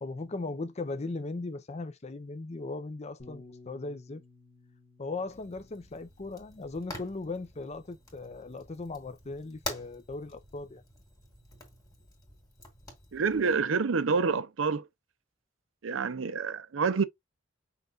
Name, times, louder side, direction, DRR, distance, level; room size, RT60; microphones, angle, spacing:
voice 1, 0.0-4.2 5.0-10.8, left 3 dB, 35° left, 0.6 m, -38 dB
Bass guitar, 3.2-7.7 8.5-9.4, left 3 dB, 60° left, 1.4 m, -57 dB
Fire, 5.3-13.6, left 2 dB, 20° left, 2.0 m, -47 dB
voice 2, 13.1-14.8 15.8-17.0, right 5 dB, 85° right, 0.6 m, -27 dB
5.7 x 2.4 x 3.8 m
head